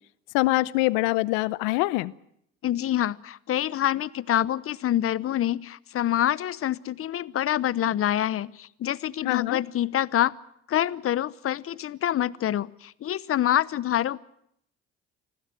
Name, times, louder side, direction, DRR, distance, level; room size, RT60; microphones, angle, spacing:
voice 1, 0.3-2.1 9.2-9.6, left 20 dB, 85° left, 0.8 m, -24 dB
voice 2, 2.6-10.3 10.7-14.2, left 12 dB, 50° left, 0.9 m, -26 dB
26.0 x 16.0 x 8.9 m
supercardioid pair, 80°, 29 cm